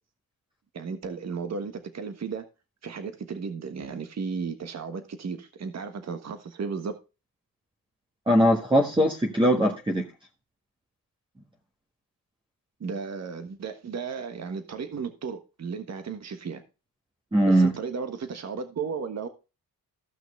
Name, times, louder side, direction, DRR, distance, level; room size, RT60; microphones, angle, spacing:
voice 1, 0.7-2.4 2.8-7.0 12.8-16.6 17.5-19.3, right 5 dB, 50° right, 8 dB, 1.4 m, -34 dB
voice 2, 8.3-10.1 17.3-17.8, equal, 15° right, 0 dB, 1.5 m, -21 dB
15.0 x 6.0 x 3.2 m, 0.30 s
cardioid pair, 105°, 35 cm